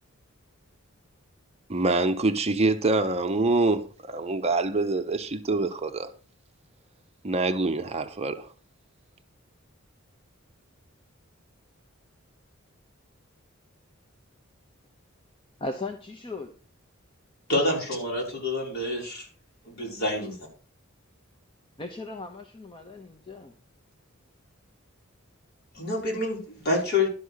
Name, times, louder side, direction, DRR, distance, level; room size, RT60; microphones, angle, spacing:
voice 1, 1.7-6.1 7.2-8.5, right 3 dB, 30° right, 0.7 m, -25 dB
voice 2, 15.6-16.5 21.8-23.5, left 2 dB, 25° left, 0.9 m, -37 dB
voice 3, 17.5-19.3 19.6-20.4 25.7-27.1, left 2 dB, 50° left, 4.2 m, -27 dB
11.5 x 5.4 x 6.4 m
head